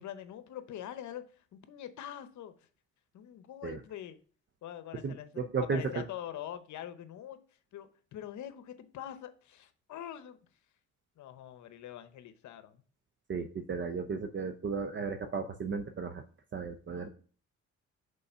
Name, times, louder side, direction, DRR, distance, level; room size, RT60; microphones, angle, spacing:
voice 1, 0.0-2.5 3.1-4.2 4.6-5.3 5.6-7.4 7.7-10.4 11.2-12.8 16.9-17.1, left 11 dB, 70° left, 0.8 m, -44 dB
voice 2, 5.0-6.0 13.3-16.2 16.5-17.1, right 5 dB, 40° right, 0.7 m, -34 dB
5.5 x 3.8 x 5.5 m
cardioid pair, 90°, 30 cm